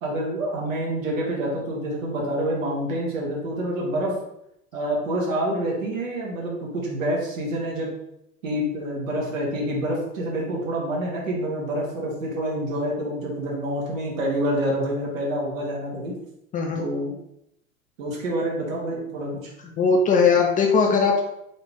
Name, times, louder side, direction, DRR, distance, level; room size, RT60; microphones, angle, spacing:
voice 1, 0.0-4.1 4.7-7.9 8.4-16.1 16.7-17.1 18.0-19.4, right 1 dB, 70° right, -2 dB, 1.6 m, -27 dB
voice 2, 16.5-16.9 19.8-21.2, left 5 dB, 20° left, 1 dB, 0.4 m, -19 dB
4.0 x 2.8 x 3.5 m, 0.78 s
figure-of-eight pair, 80°, 41 cm